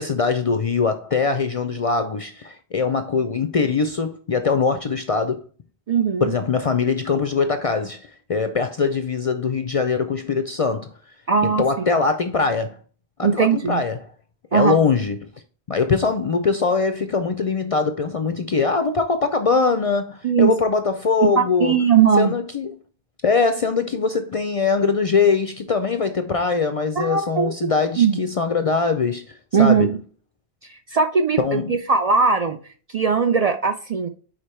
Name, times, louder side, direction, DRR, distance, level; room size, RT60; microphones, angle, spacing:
voice 1, 0.0-5.4 6.2-10.9 11.4-12.8 13.2-14.0 14.5-15.2 15.7-21.7 22.2-22.8 23.2-29.9 31.4-31.8, left 4 dB, 50° left, 0.4 m, -22 dB
voice 2, 5.9-6.3 11.3-11.8 13.2-13.8 14.5-14.8 20.2-20.5 21.2-22.3 27.0-27.5 28.0-28.2 29.5-30.0 30.7-32.6 32.9-34.1, right 6 dB, 55° right, 0.4 m, -19 dB
5.0 x 4.5 x 4.3 m
omnidirectional pair, 1.0 m